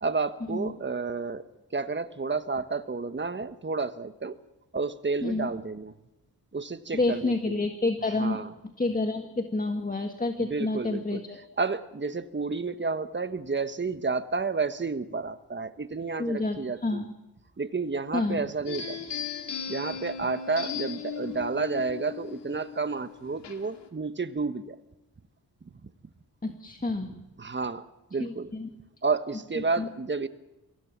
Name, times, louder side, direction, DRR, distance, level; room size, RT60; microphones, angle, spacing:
voice 1, 0.0-1.5 1.7-4.4 4.7-5.9 6.5-7.7 8.2-8.5 10.4-11.2 11.6-17.1 17.6-19.2 19.7-24.8 25.8-25.9 27.4-28.5 29.0-30.3, right 4 dB, 25° right, 11 dB, 1.3 m, -31 dB
voice 2, 6.9-8.4 8.8-11.4 16.2-17.1 18.1-18.4 26.4-27.1 28.2-28.7 29.6-29.9, left 2 dB, 20° left, 5 dB, 1.7 m, -29 dB
sound 1, 18.7-23.9, left 7 dB, 85° left, 2.2 m, -37 dB
24.0 x 16.0 x 7.4 m, 1.0 s
cardioid pair, 70°, 41 cm